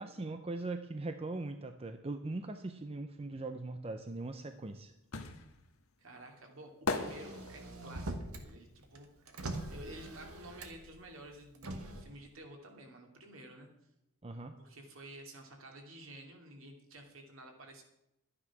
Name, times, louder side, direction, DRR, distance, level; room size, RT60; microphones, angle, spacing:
voice 1, 0.0-4.9 14.2-14.6, right 2 dB, 25° right, 8 dB, 0.6 m, -40 dB
sound 1, 4.2-10.1 10.4-12.0 12.2-12.3, left 3 dB, 80° left, 1.4 m, -41 dB
voice 2, 6.0-9.1 9.6-13.7 14.6-17.8, right 1 dB, 65° right, 2 dB, 2.5 m, -51 dB
Motor vehicle (road), 6.9-8.5 8.8-10.9 11.5-12.0, right 1 dB, 85° right, 1.6 m, -43 dB
12.0 x 9.8 x 6.0 m, 0.86 s
head